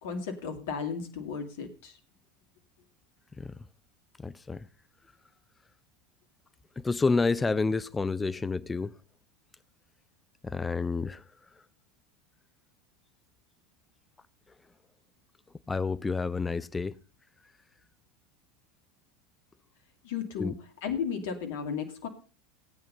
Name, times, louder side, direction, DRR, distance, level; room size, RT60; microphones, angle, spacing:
voice 1, 0.0-2.0 20.0-20.5 20.8-22.1, left 6 dB, 60° left, 2.4 m, -34 dB
voice 2, 4.2-4.7 6.8-8.9 10.4-11.2 15.7-16.9 20.4-20.5, left 4 dB, 15° left, 0.6 m, -29 dB
18.0 x 8.9 x 5.4 m
figure-of-eight pair, 80°, 0 cm